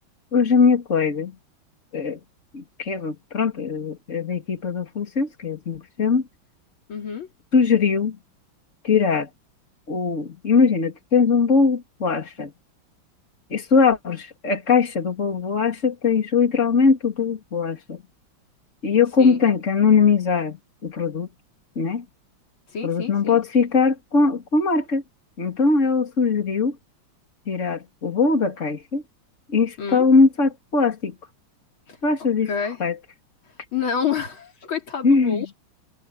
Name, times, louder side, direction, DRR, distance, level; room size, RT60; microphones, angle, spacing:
voice 1, 0.3-1.3 1.9-2.2 2.5-6.2 7.5-8.2 8.8-9.3 9.9-12.5 13.5-18.0 18.8-21.3 21.8-22.0 22.8-25.0 25.4-26.8 27.5-29.0 29.5-31.1 32.0-32.5 32.8-33.0 35.0-35.4, left 5 dB, 35° left, 3.1 m, -21 dB
voice 2, 6.9-7.3 19.2-19.4 22.7-23.4 29.8-30.1 31.9-32.0 32.5-32.8 33.7-35.5, left 7 dB, 80° left, 3.8 m, -28 dB
omnidirectional pair, 2.2 m